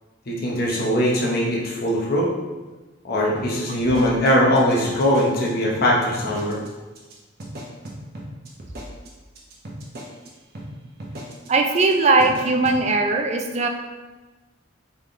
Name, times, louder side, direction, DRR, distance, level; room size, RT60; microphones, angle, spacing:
voice 1, 0.3-2.3 3.0-6.6, equal, 50° left, -4 dB, 0.8 m, -21 dB
sound 1, 3.3-5.5 5.7-5.9 6.2-6.7 6.9-7.1 7.4-10.3 10.5-10.7 11.0-11.5 11.7-11.9 12.2-12.8, right 1 dB, 50° right, 0.9 m, -37 dB
voice 2, 11.5-13.7, right 3 dB, 35° right, 4 dB, 0.4 m, -19 dB
4.1 x 3.6 x 3.6 m, 1.2 s
head